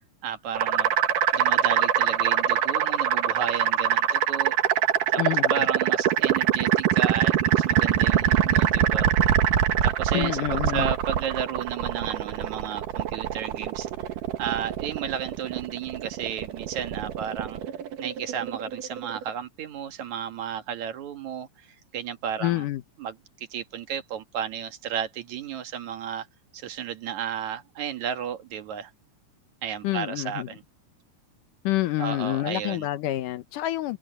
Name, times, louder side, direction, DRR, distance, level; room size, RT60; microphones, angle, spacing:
voice 1, 0.2-0.9 1.3-4.6 5.1-5.2 5.5-9.1 9.8-10.4 10.7-13.9 14.4-17.6 18.0-21.7 21.9-22.7 23.0-26.3 26.5-28.9 29.6-30.6 32.0-32.9, right 8 dB, 65° right, 2.7 m, -33 dB
sound 1, 0.6-19.3, right 10 dB, 80° right, 2.9 m, -24 dB
voice 2, 5.2-5.7 10.1-10.9 22.4-22.8 29.8-30.5 31.6-34.0, left 15 dB, 85° left, 2.6 m, -27 dB
open air
omnidirectional pair, 3.7 m